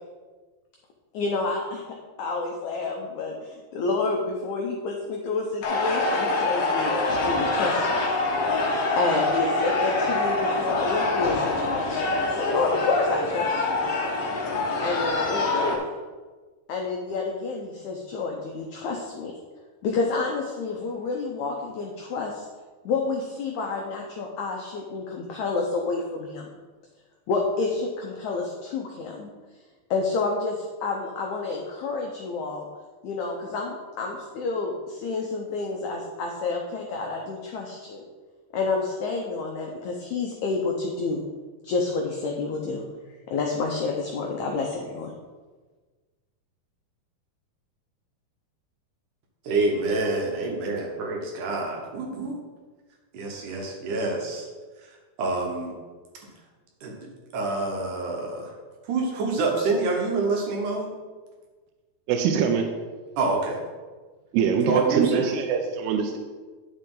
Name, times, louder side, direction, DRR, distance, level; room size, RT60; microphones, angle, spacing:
voice 1, 1.1-6.9 7.2-8.0 9.0-13.8 14.8-15.8 16.7-19.3 19.8-22.5 22.9-26.5 27.3-29.3 29.9-32.7 33.0-38.0 38.5-41.2 41.6-42.9 43.3-45.1, left 3 dB, 80° left, 1.7 m, -29 dB
sound 1, 5.6-15.8, left 2 dB, 65° left, 1.4 m, -25 dB
voice 2, 49.5-52.4 53.1-54.5 54.8-55.7 56.8-56.9 57.3-58.5 58.9-60.9 63.2-63.6 64.7-65.4, right 3 dB, 65° right, 2.4 m, -27 dB
voice 3, 62.1-62.7 64.3-66.2, right 7 dB, 85° right, 2.6 m, -23 dB
10.0 x 6.6 x 3.8 m
omnidirectional pair, 4.5 m